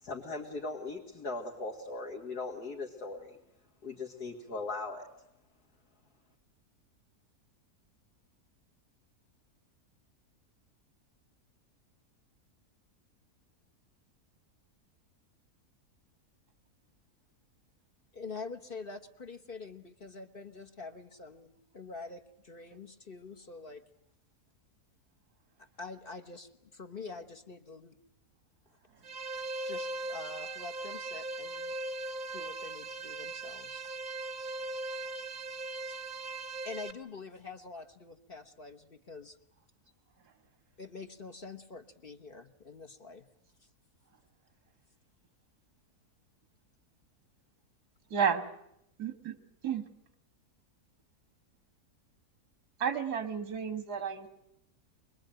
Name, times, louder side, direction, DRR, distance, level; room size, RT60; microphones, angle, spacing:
voice 1, 0.0-3.4 3.8-5.1, left 3 dB, 85° left, -1 dB, 2.7 m, -39 dB
voice 2, 18.1-23.8 25.6-28.0 29.4-31.7 32.3-33.9 34.4-34.5 34.9-35.1 35.7-36.0 36.6-39.4 40.8-43.3 43.6-43.7, left 4 dB, 40° left, 4 dB, 1.3 m, -46 dB
sound 1, 29.0-36.9, right 2 dB, 35° right, 1.0 m, -39 dB
voice 3, 48.1-48.5 49.0-49.4 49.6-49.8 52.8-54.3, right 7 dB, 90° right, 10 dB, 2.1 m, -31 dB
25.0 x 21.0 x 9.1 m, 0.77 s
omnidirectional pair, 1.6 m